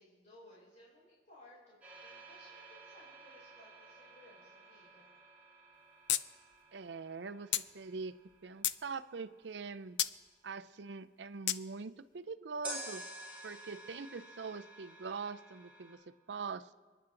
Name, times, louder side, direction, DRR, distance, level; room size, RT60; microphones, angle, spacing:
voice 1, 0.0-5.0, left 1 dB, 40° left, -7 dB, 4.9 m, -60 dB
sound 1, 1.8-9.8 12.6-16.0, right 1 dB, 10° right, 5.8 m, -51 dB
sound 2, 6.1-6.2 6.5-6.6 7.5-7.7 8.3-8.8 10.0-10.1 11.5-11.6, left 13 dB, 90° left, 0.5 m, -31 dB
voice 2, 6.7-10.0 10.4-13.0 13.4-16.7, right 4 dB, 85° right, 13 dB, 0.6 m, -43 dB
29.5 x 10.5 x 3.8 m, 1.5 s
head